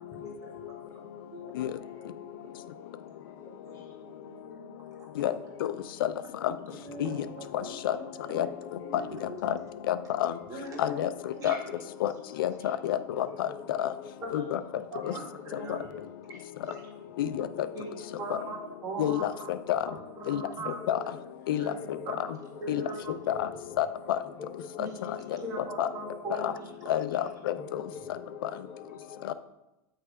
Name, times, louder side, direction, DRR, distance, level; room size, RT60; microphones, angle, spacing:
voice 1, 0.1-4.4 5.1-6.2 6.7-9.3 9.6-9.7 10.2-10.6 11.3-12.0 12.5-12.6 13.2-14.5 15.0-18.7 19.0-19.6 20.6-24.0 24.2-25.4 25.8-27.2 27.6-29.3, left 4 dB, 25° left, -1 dB, 1.0 m, -49 dB
voice 2, 3.6-4.7 6.4-6.5 6.8-8.5 8.8-9.4 10.5-11.1 11.4-11.6 12.6-12.7 14.2-14.4 14.9-15.8 17.7-17.8 18.2-18.6 18.8-19.3 19.8-20.7 21.0-21.1 21.6-21.7 22.1-22.2 22.6-23.1 24.8-24.9 25.4-26.6, right 3 dB, 30° right, -3 dB, 1.9 m, -40 dB
voice 3, 9.9-10.3 10.8-11.1 11.4-11.6 12.0-12.1 12.4-13.9 14.3-14.6 15.7-15.8 17.2-17.5 19.0-19.3 19.7-19.8 20.3-20.4 20.9-21.0 21.5-21.6 22.7-22.8 23.3-23.4 23.8-24.2 25.8-25.9 26.4-26.5 26.9-27.5 29.3-29.4, left 12 dB, 85° left, 13 dB, 0.4 m, -28 dB
7.9 x 3.3 x 4.8 m, 0.95 s
supercardioid pair, 130°, 11 cm